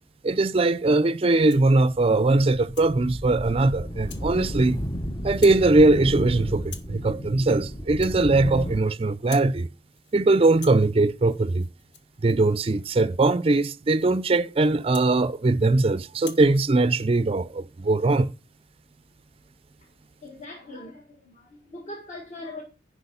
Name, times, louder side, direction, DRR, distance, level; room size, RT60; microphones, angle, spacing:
voice 1, 0.2-4.8 5.2-9.7 10.1-11.7 12.2-18.3, right 2 dB, 30° right, 0.4 m, -21 dB
Rattle (instrument), 1.3-1.8 2.2-2.9 3.4-3.7 4.1-4.3 4.6-5.0 5.3-5.7 5.9-6.3 6.6-7.0 7.4-7.6 7.9-8.9 9.1-9.6 9.9-10.2 10.5-15.8 16.2-16.5, left 7 dB, 75° left, 1.2 m, -47 dB
sound 1, 2.0-8.8, equal, 20° left, 0.7 m, -33 dB
voice 2, 20.2-22.6, left 2 dB, 40° left, 1.7 m, -41 dB
10.5 x 4.9 x 5.4 m
head